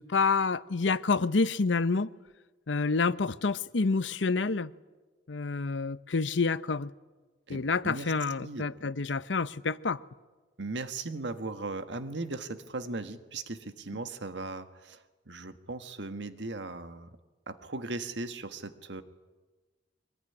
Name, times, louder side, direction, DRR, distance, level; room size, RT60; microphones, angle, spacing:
voice 1, 0.0-2.1 2.7-4.7 5.3-6.9 7.5-10.0, left 4 dB, 85° left, 0.8 m, -28 dB
voice 2, 7.5-8.1 8.4-8.9 10.6-17.1 17.5-19.0, right 3 dB, 75° right, 1.6 m, -38 dB
24.0 x 20.5 x 9.9 m
head